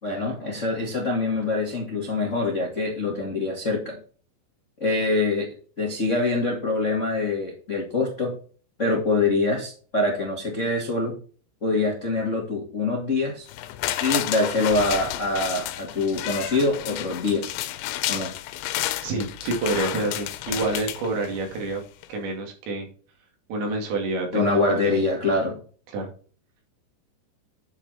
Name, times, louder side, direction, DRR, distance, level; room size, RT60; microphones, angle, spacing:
voice 1, 0.0-4.0 4.8-5.5 5.8-8.3 8.8-11.1 11.6-13.4 14.0-17.5 18.1-18.3 24.3-25.6, left 2 dB, 50° left, -1 dB, 0.8 m, -24 dB
sound 1, 13.5-21.6 22.0-22.1, left 14 dB, 90° left, 3.1 m, -31 dB
voice 2, 19.0-21.8 22.1-22.9 23.5-25.1 25.9-26.1, right 2 dB, 75° right, 2 dB, 4.7 m, -28 dB
10.0 x 5.1 x 4.3 m, 0.41 s
omnidirectional pair, 5.2 m